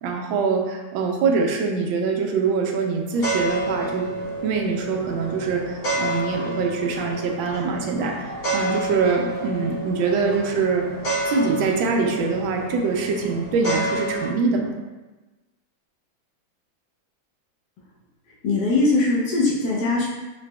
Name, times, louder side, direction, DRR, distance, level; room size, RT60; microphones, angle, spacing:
voice 1, 0.0-4.1 4.4-10.9 11.3-14.7, right 4 dB, 80° right, 1 dB, 1.3 m, -24 dB
sound 1, 3.1-14.3, right 1 dB, 50° left, 1.5 m, -29 dB
voice 2, 18.4-20.0, left 3 dB, 70° left, -4 dB, 1.0 m, -20 dB
3.9 x 3.3 x 2.2 m, 1.1 s
omnidirectional pair, 2.2 m